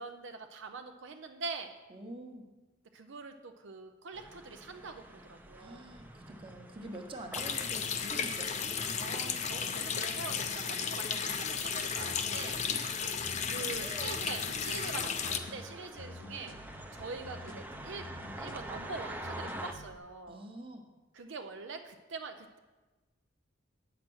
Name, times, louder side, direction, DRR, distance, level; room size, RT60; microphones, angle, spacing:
voice 1, 0.0-1.7 2.9-5.8 9.0-12.6 13.5-16.6 16.9-18.1 18.4-20.4 21.1-22.6, right 4 dB, 70° right, 6 dB, 0.5 m, -44 dB
voice 2, 1.9-2.4 5.6-9.1 12.7-13.3 13.8-14.2 20.3-20.8, right 1 dB, 30° right, 3 dB, 1.0 m, -47 dB
sound 1, 4.1-19.7, right 1 dB, 10° right, 0.5 m, -48 dB
Water tap faucet, 7.3-15.4, left 6 dB, 35° left, 0.5 m, -34 dB
sound 2, 12.0-20.0, left 1 dB, 90° left, 0.9 m, -49 dB
8.7 x 5.9 x 6.2 m, 1.2 s
head